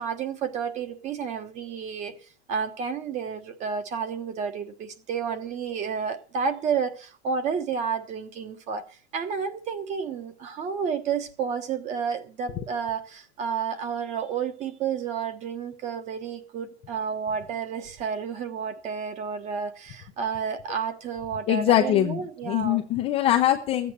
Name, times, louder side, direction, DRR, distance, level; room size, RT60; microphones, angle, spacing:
voice 1, 0.0-2.1 2.5-22.8, right 6 dB, 20° right, 1.1 m, -31 dB
voice 2, 21.5-23.9, left 12 dB, 20° left, 0.6 m, -23 dB
13.5 x 8.5 x 6.6 m
supercardioid pair, 160°, 34 cm